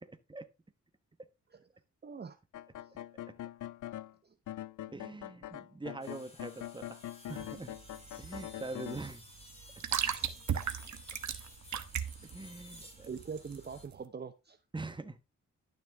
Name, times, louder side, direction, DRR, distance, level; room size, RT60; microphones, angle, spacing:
voice 1, 0.0-0.5 3.3-3.4 4.9-7.0 7.3-7.8 8.2-9.2 12.2-13.1 14.7-15.2, right 2 dB, 15° right, 1.2 m, -43 dB
voice 2, 2.0-2.4 2.8-3.0 4.2-4.4 10.1-10.3 13.1-14.6, right 5 dB, 35° right, 0.8 m, -43 dB
sound 1, 2.5-4.1 4.5-9.0, left 13 dB, 85° left, 0.5 m, -43 dB
sound 2, 6.0-13.9, left 1 dB, 20° left, 4.0 m, -55 dB
sound 3, 7.3-14.0, right 8 dB, 70° right, 1.1 m, -37 dB
11.5 x 6.5 x 3.5 m
cardioid pair, 90°, 30 cm